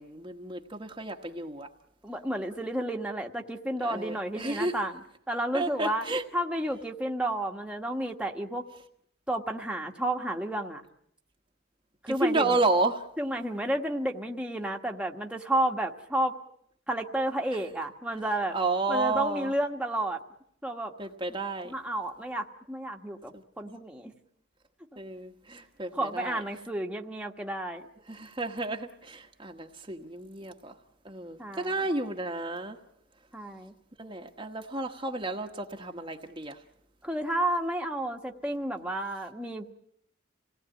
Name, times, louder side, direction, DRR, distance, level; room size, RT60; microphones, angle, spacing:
voice 1, 0.0-1.7 3.8-4.7 5.5-6.2 12.1-13.0 18.5-19.5 21.0-21.7 25.0-26.4 28.1-30.7 31.0-32.8 34.0-36.6, right 2 dB, 25° right, 2 dB, 1.3 m, -31 dB
voice 2, 2.0-5.0 5.3-6.0 6.3-8.6 9.3-10.8 12.0-12.6 13.2-16.3 16.9-18.6 18.9-20.2 20.6-20.9 21.6-24.1 25.9-27.8 31.4-31.7 33.3-33.7 37.0-39.7, right 1 dB, 5° right, 1 dB, 1.5 m, -31 dB
27.5 x 18.5 x 9.0 m, 0.73 s
head